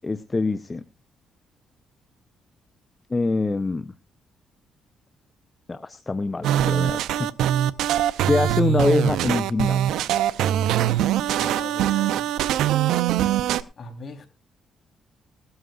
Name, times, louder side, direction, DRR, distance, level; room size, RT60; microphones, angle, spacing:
voice 1, 0.0-0.8 3.1-3.9 5.7-7.3 8.3-10.0, left 3 dB, 25° left, 11 dB, 0.7 m, -24 dB
sound 1, 6.4-13.6, right 11 dB, 85° right, 0.6 m, -22 dB
voice 2, 11.4-12.2 13.8-14.3, left 3 dB, 50° left, 5 dB, 3.8 m, -39 dB
20.0 x 13.0 x 2.5 m, 0.28 s
cardioid pair, 90°, 0 cm